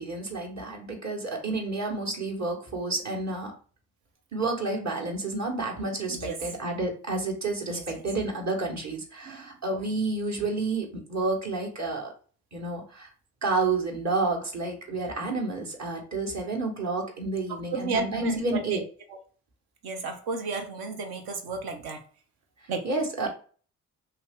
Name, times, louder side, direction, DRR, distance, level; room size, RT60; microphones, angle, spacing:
voice 1, 0.0-3.5 4.3-12.1 12.5-13.1 13.4-18.8 22.8-23.3, right 3 dB, 45° right, 0 dB, 1.4 m, -30 dB
voice 2, 17.7-18.8 19.8-22.0 22.7-22.8, right 4 dB, 70° right, 4 dB, 0.9 m, -32 dB
2.8 x 2.7 x 3.5 m, 0.41 s
hypercardioid pair, 45°, 38 cm